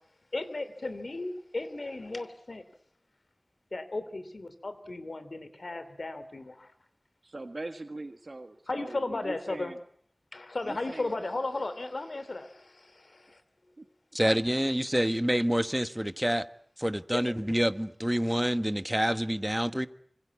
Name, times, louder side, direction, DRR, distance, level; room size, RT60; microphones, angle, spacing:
voice 1, 0.3-2.6 3.7-6.7 8.7-9.7 10.3-13.4 17.1-17.3, left 2 dB, 90° left, 3.0 m, -35 dB
voice 2, 7.2-9.8 10.6-11.2 13.8-13.9, right 2 dB, 70° right, 1.6 m, -41 dB
voice 3, 14.1-16.5 16.8-19.9, equal, 10° right, 1.3 m, -27 dB
26.5 x 24.5 x 8.5 m
wide cardioid pair, 45°, 0 cm